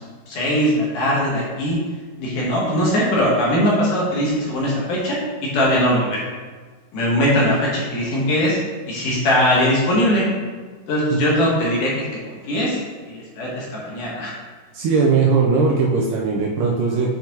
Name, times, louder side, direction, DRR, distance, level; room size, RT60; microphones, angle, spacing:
voice 1, 0.3-1.8 2.2-6.3 6.9-8.6 8.9-10.2 10.9-11.9 12.2-12.8 13.1-14.3, equal, 65° left, -5 dB, 2.4 m, -20 dB
voice 2, 14.7-17.1, right 4 dB, 85° right, -3 dB, 1.9 m, -19 dB
9.0 x 5.6 x 3.0 m, 1.5 s
omnidirectional pair, 4.6 m